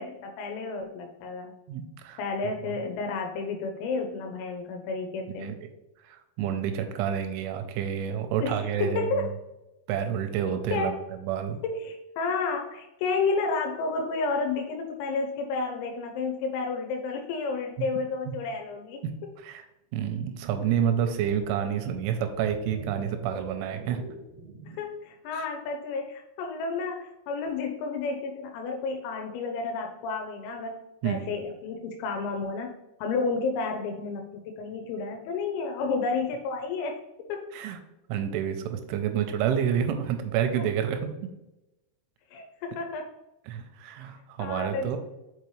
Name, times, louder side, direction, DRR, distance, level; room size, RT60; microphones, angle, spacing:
voice 1, 0.0-1.6 2.2-5.6 8.4-9.3 10.7-11.1 11.6-19.3 24.8-37.0 37.3-37.5 42.3-43.1 44.4-45.0, left 4 dB, 90° left, 3 dB, 3.4 m, -31 dB
voice 2, 1.7-2.2 5.4-5.6 6.0-9.3 9.9-10.9 11.2-11.6 19.0-19.1 19.4-19.6 19.9-24.0 25.3-25.5 31.0-31.3 37.5-37.8 38.1-41.3 43.5-45.0, right 9 dB, 85° right, 7 dB, 2.9 m, -29 dB
sound 1, 20.3-24.9, right 3 dB, 60° right, 1.6 m, -43 dB
6.9 x 5.2 x 3.1 m, 0.96 s
omnidirectional pair, 5.9 m